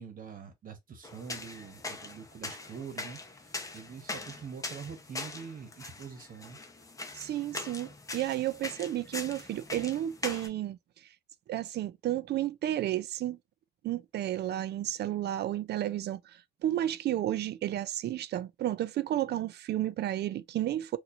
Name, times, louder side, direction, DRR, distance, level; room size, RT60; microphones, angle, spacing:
voice 1, 0.0-6.6, right 6 dB, 55° right, 1.2 m, -45 dB
sound 1, 1.0-10.5, left 3 dB, 20° left, 0.8 m, -42 dB
voice 2, 7.1-10.8 11.5-13.4 13.8-16.2 16.6-21.0, right 13 dB, 80° right, 0.4 m, -32 dB
4.3 x 2.6 x 2.5 m
wide cardioid pair, 140°, 17 cm